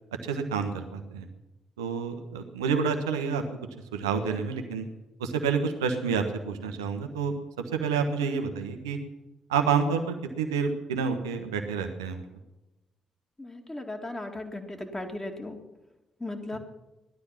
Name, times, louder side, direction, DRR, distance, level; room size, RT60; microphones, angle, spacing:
voice 1, 0.2-1.3 1.8-3.4 3.9-4.9 5.2-7.3 7.7-9.0 9.5-12.2, right 6 dB, 80° right, 6 dB, 1.3 m, -28 dB
voice 2, 13.4-15.6 16.2-16.6, left 2 dB, 20° left, 3 dB, 2.3 m, -36 dB
17.0 x 12.0 x 5.9 m, 1.0 s
figure-of-eight pair, 40°, 2 cm